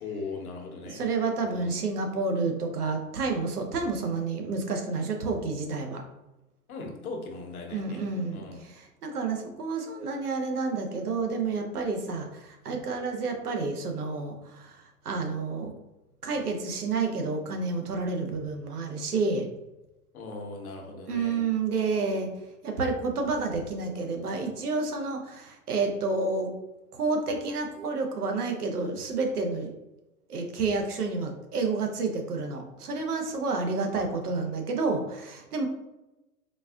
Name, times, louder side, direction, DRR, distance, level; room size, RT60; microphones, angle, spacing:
voice 1, 0.0-1.0 1.4-1.8 6.7-8.0 8.3-8.6 20.1-21.4, left 3 dB, 70° left, 2 dB, 0.9 m, -39 dB
voice 2, 0.8-6.0 7.7-15.7 16.2-19.5 21.1-26.5 26.9-29.7 30.3-35.7, right 4 dB, 85° right, 3 dB, 0.8 m, -30 dB
4.0 x 2.4 x 2.3 m, 0.98 s
hypercardioid pair, 105°, 44 cm